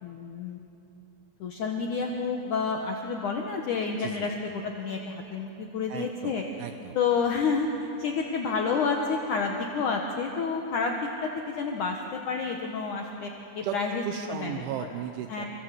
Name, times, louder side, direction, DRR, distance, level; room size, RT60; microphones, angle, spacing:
voice 1, 0.0-0.6 1.4-6.4 7.0-13.3 13.6-14.6 15.3-15.5, left 5 dB, 70° left, 1 dB, 1.9 m, -29 dB
voice 2, 4.0-4.3 5.9-6.3 6.6-7.0 13.6-13.8 14.1-15.5, right 10 dB, 80° right, 6 dB, 3.2 m, -35 dB
29.0 x 25.0 x 7.7 m, 2.9 s
omnidirectional pair, 5.8 m